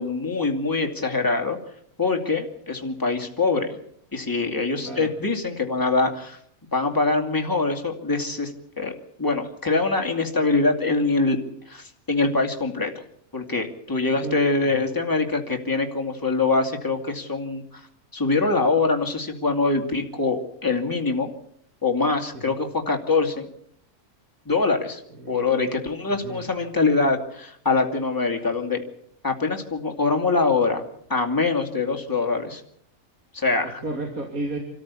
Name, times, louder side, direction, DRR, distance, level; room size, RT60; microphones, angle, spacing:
voice 1, 0.0-1.6 2.0-3.7 4.1-6.4 6.7-8.5 8.8-8.9 9.2-11.4 11.7-12.9 13.3-17.8 18.1-21.3 21.8-23.4 24.5-25.0 25.3-28.8 29.2-30.8 31.1-32.6 33.3-33.8, left 3 dB, 15° left, 3 dB, 2.6 m, -24 dB
voice 2, 14.2-14.8 22.3-22.5 25.2-25.7 26.1-26.4 33.6-34.6, right 2 dB, 70° right, 1 dB, 3.4 m, -33 dB
27.5 x 14.0 x 8.4 m, 0.68 s
omnidirectional pair, 1.5 m